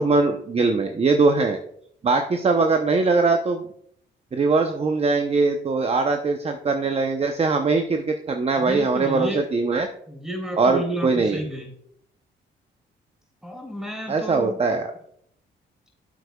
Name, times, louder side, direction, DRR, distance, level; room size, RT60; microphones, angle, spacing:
voice 1, 0.0-1.6 2.0-3.6 4.3-9.9 10.5-11.4 14.1-14.9, right 3 dB, 30° right, 5 dB, 0.7 m, -21 dB
voice 2, 8.6-9.4 10.1-11.7 13.4-14.6, right 1 dB, 5° right, 1 dB, 3.3 m, -31 dB
9.6 x 8.0 x 2.3 m, 0.68 s
cardioid pair, 90°, 20 cm